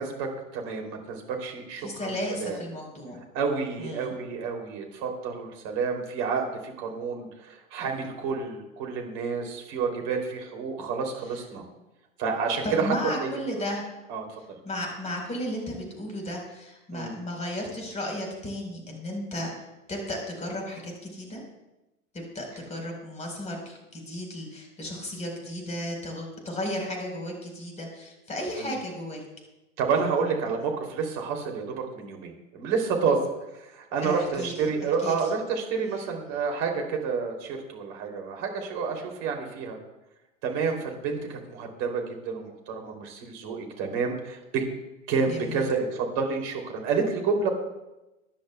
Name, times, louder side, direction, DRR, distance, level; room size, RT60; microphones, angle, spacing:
voice 1, 0.0-2.6 3.3-11.6 12.2-12.9 13.2-13.4 14.1-14.2 16.9-17.1 28.6-28.7 29.8-39.8 40.4-44.6 45.1-47.5, right 5 dB, 40° right, 2 dB, 3.0 m, -29 dB
voice 2, 1.8-3.2 3.8-4.1 12.6-13.8 14.6-19.5 19.9-21.4 22.1-29.2 34.0-34.5 35.0-35.2 45.3-45.7, left 1 dB, 15° left, 1 dB, 4.3 m, -34 dB
23.0 x 10.5 x 2.3 m, 0.99 s
figure-of-eight pair, 95°, 41 cm